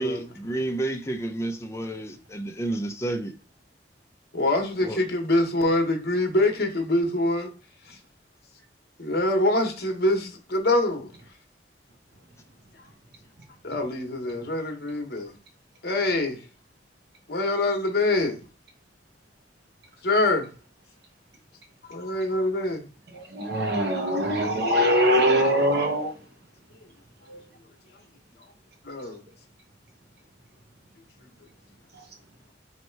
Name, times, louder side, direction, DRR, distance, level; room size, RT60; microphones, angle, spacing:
voice 1, 0.0-3.3 4.8-5.0, right 2 dB, 15° left, 0.6 m, -30 dB
voice 2, 4.3-7.5 7.9-8.0 9.0-11.1 13.6-15.3 15.8-16.4 17.3-18.4 20.0-20.5 21.9-22.9 28.8-29.2, left 2 dB, 55° left, 1.0 m, -25 dB
voice 3, 23.1-26.1 27.3-27.4 31.9-32.0, equal, 60° right, 1.0 m, -23 dB
3.2 x 2.9 x 4.5 m
head